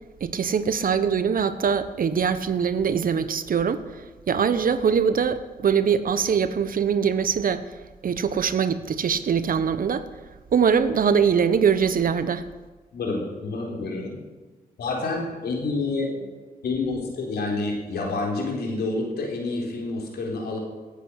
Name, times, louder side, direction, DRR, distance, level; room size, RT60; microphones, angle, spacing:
voice 1, 0.2-3.8 4.3-7.6 8.0-10.1 10.5-12.4, right 7 dB, 60° right, 1.0 m, -22 dB
voice 2, 12.9-14.2 14.8-16.3 16.6-20.6, left 3 dB, 80° left, 3.9 m, -28 dB
17.5 x 8.3 x 6.4 m
cardioid pair, 60°, 16 cm